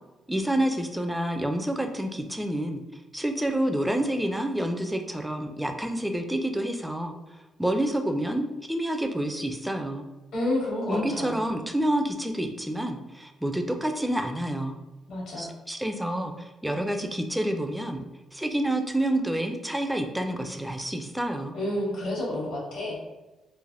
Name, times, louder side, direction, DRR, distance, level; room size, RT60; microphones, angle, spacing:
voice 1, 0.3-2.8 3.1-7.1 7.6-10.0 10.9-14.7 15.4-18.0 18.3-21.6, right 1 dB, 5° right, 5 dB, 0.3 m, -28 dB
voice 2, 10.3-11.3 15.1-15.5 21.5-23.1, left 1 dB, 80° left, -4 dB, 1.3 m, -30 dB
3.2 x 2.1 x 2.5 m, 1.1 s
cardioid pair, 90°, 0 cm